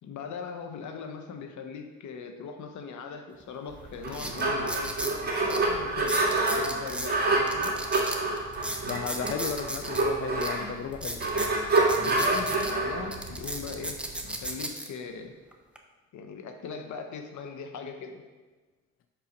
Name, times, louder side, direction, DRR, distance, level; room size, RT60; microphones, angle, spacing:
voice 1, 0.0-7.7 11.9-14.0 14.2-15.3 16.1-18.2, left 5 dB, 70° left, 5 dB, 1.0 m, -40 dB
sound 1, 3.4-3.5 4.0-5.2 5.5-5.6 6.0-7.1 7.5-10.0 10.4-10.5 10.9-12.7 13.1-14.9 15.5-15.8, right 1 dB, 5° right, 0.8 m, -35 dB
sound 2, 3.8-14.5, right 2 dB, 30° right, 2.2 m, -28 dB
voice 2, 8.8-11.2, left 7 dB, 45° left, 7 dB, 0.5 m, -34 dB
5.7 x 5.5 x 5.1 m, 1.3 s
cardioid pair, 90°, 30 cm